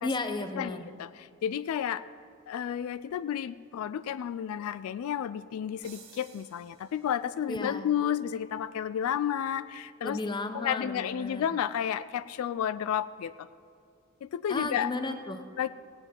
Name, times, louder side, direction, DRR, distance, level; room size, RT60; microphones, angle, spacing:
voice 1, 0.0-0.9 7.5-7.9 10.0-11.5 14.5-15.4, left 2 dB, 20° left, 8 dB, 0.6 m, -34 dB
voice 2, 0.6-1.1 1.4-2.0 2.5-10.2 10.5-13.3 14.3-14.9 15.6-15.7, left 9 dB, 80° left, 15 dB, 0.3 m, -31 dB
sound 1, 5.8-7.5, right 6 dB, 45° right, 2.0 m, -54 dB
17.0 x 8.8 x 4.4 m, 2.5 s
head